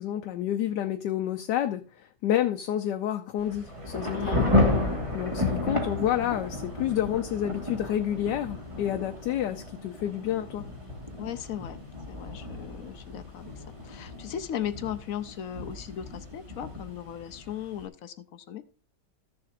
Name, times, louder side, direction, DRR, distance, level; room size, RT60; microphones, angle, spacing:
voice 1, 0.0-4.5 5.1-10.6, left 11 dB, 80° left, 1.2 m, -29 dB
Thunder / Rain, 3.4-17.8, left 2 dB, 20° right, 1.7 m, -32 dB
voice 2, 4.1-4.6 11.2-11.8 12.1-18.6, left 10 dB, 65° left, 0.9 m, -37 dB
14.5 x 7.0 x 2.5 m
omnidirectional pair, 1.8 m